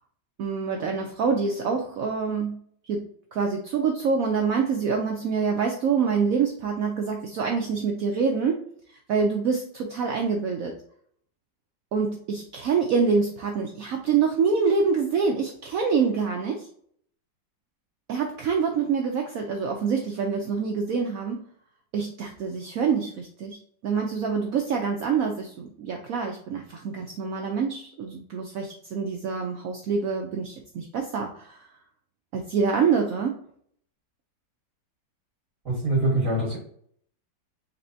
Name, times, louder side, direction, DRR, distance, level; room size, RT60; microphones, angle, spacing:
voice 1, 0.4-2.6 2.8-3.1 3.3-10.7 11.9-16.7 18.1-21.4 21.9-31.7 32.3-33.4, right 5 dB, 75° right, 2 dB, 0.8 m, -26 dB
voice 2, 35.7-36.6, right 2 dB, 50° right, -6 dB, 1.8 m, -24 dB
4.2 x 3.3 x 2.7 m, 0.63 s
omnidirectional pair, 2.0 m